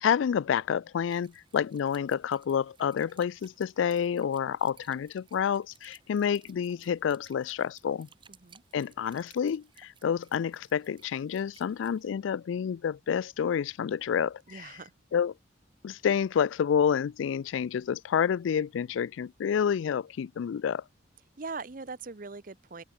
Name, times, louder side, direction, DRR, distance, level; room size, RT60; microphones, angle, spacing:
voice 1, 0.0-8.1 8.7-14.7 15.1-15.3 15.8-20.8, left 7 dB, 80° left, 0.3 m, -29 dB
sound 1, 1.1-12.1, right 7 dB, 25° right, 3.6 m, -60 dB
voice 2, 8.3-8.6 14.5-14.9 21.4-22.8, right 4 dB, 45° right, 0.8 m, -41 dB
head